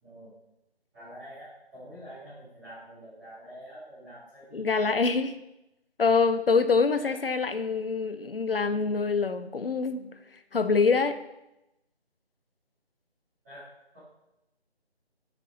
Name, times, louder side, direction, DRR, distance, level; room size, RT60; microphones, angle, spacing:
voice 1, 0.0-0.3 0.9-4.7 6.9-7.5 13.4-13.6 13.9-14.0, equal, 15° right, -15 dB, 2.1 m, -47 dB
voice 2, 4.5-5.4 6.0-10.2 10.5-11.2, left 4 dB, 60° left, 11 dB, 0.7 m, -25 dB
8.9 x 6.1 x 4.1 m, 0.91 s
figure-of-eight pair, 160°, 32 cm